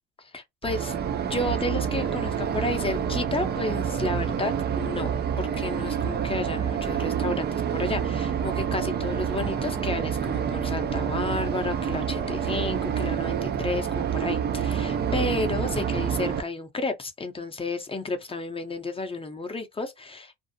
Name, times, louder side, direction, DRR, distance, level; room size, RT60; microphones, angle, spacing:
voice 1, 0.2-1.0 1.2-5.1 5.4-20.4, left 2 dB, 15° left, 0.6 m, -32 dB
sound 1, 0.6-16.4, right 8 dB, 30° right, 0.4 m, -28 dB
2.6 x 2.0 x 2.6 m
cardioid pair, 95°, 34 cm